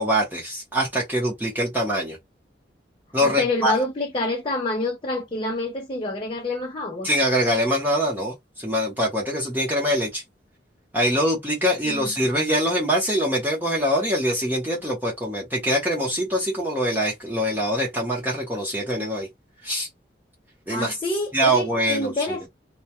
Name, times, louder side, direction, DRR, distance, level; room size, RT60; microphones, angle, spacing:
voice 1, 0.0-2.2 3.1-3.8 7.0-10.2 10.9-19.3 19.6-19.9 20.7-20.9 21.3-22.1, equal, 10° right, 0.7 m, -23 dB
voice 2, 3.2-7.1 11.8-12.1 20.7-22.5, left 2 dB, 30° left, 0.6 m, -27 dB
2.2 x 2.2 x 2.8 m
head